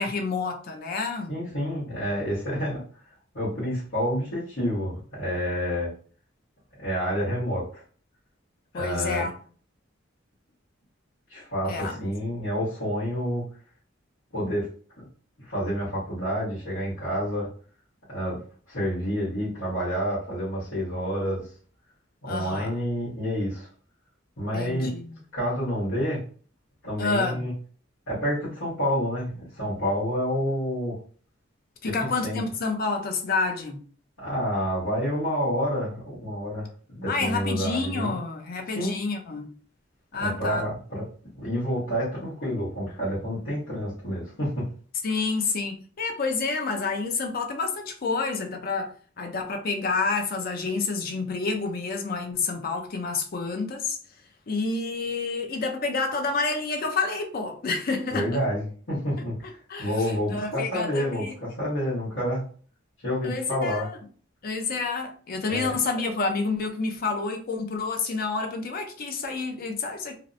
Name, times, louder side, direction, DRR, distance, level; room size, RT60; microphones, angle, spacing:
voice 1, 0.0-1.4 8.7-9.3 11.7-12.0 22.2-22.7 24.5-25.1 27.0-27.4 31.8-33.8 37.1-39.5 40.1-40.6 45.0-48.9 49.2-54.0 54.5-58.4 59.7-61.3 63.2-64.0 64.4-70.2, left 4 dB, 50° left, 0.5 m, -29 dB
voice 2, 1.3-2.8 3.3-5.9 6.8-7.8 8.7-9.3 11.3-13.4 14.3-14.7 15.4-17.5 18.1-18.4 18.7-21.5 22.2-23.7 24.4-24.9 25.3-26.2 26.8-27.5 28.1-31.0 31.8-31.9 32.2-32.4 34.2-36.7 36.9-38.1 38.7-39.0 40.2-41.0 41.4-44.7 58.1-62.4 63.0-63.9 65.5-65.7, equal, 80° left, 1.2 m, -28 dB
2.7 x 2.0 x 2.6 m
head